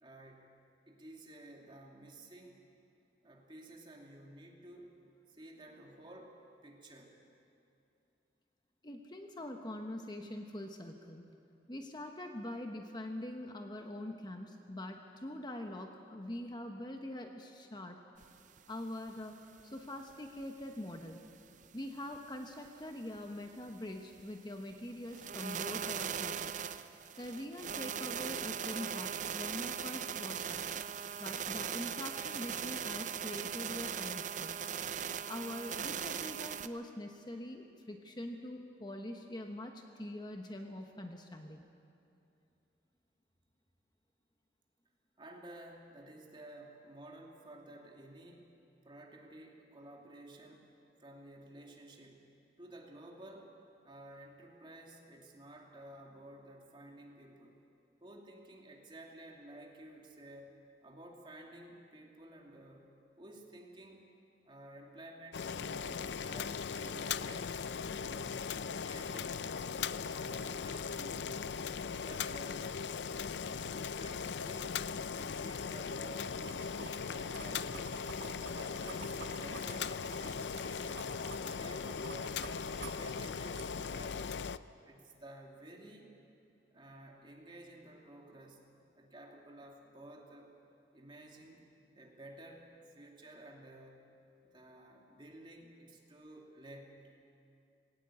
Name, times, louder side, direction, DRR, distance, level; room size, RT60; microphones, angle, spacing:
voice 1, 0.0-0.6 0.9-2.6 3.2-4.9 5.3-7.2 45.2-48.5 48.8-50.7 51.0-53.6 53.8-57.6 58.0-60.5 60.8-64.1 64.4-67.5 67.9-69.7 70.1-71.6 72.0-72.7 73.4-74.8 75.1-76.7 77.1-78.2 78.5-84.2 84.8-86.1 86.7-90.5 90.9-91.7 91.9-94.1 94.4-97.1, right 1 dB, 30° right, 0 dB, 2.5 m, -53 dB
voice 2, 8.8-11.3 11.7-18.0 18.7-19.3 19.6-21.2 21.7-26.6 27.2-30.7 31.2-34.5 35.3-41.7, left 1 dB, 25° left, 4 dB, 1.1 m, -44 dB
sound 1, 18.2-18.3 18.6-18.7 19.1-19.2 19.6-19.7 20.1-20.7 21.1-21.2 21.6-21.7 22.1-22.2 22.7-22.8 23.2-23.3 23.7-23.8 24.1-24.2 24.7-24.8 25.1-36.7, right 8 dB, 45° right, 0.6 m, -39 dB
Boiling, 65.3-84.6, left 6 dB, 80° left, 0.5 m, -39 dB
sound 2, 76.3-84.0, right 3 dB, 80° right, 1.7 m, -50 dB
19.5 x 18.0 x 8.4 m, 2.6 s
head